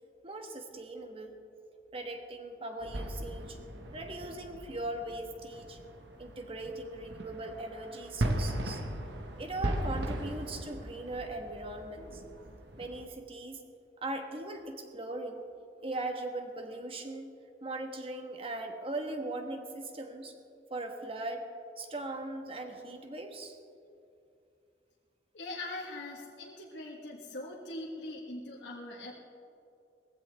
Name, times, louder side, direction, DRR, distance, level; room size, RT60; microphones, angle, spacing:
voice 1, 0.2-1.4 1.9-3.6 3.9-5.8 6.2-8.8 9.4-12.2 12.8-13.6 14.0-15.4 15.8-17.3 17.6-20.3 20.7-21.5 21.8-23.6, right 2 dB, 35° right, 4 dB, 1.4 m, -39 dB
sound 1, 2.8-13.1, right 1 dB, 85° right, 1.4 m, -38 dB
voice 2, 25.3-29.1, left 2 dB, 85° left, -3 dB, 1.5 m, -41 dB
19.5 x 15.0 x 3.5 m, 2.6 s
head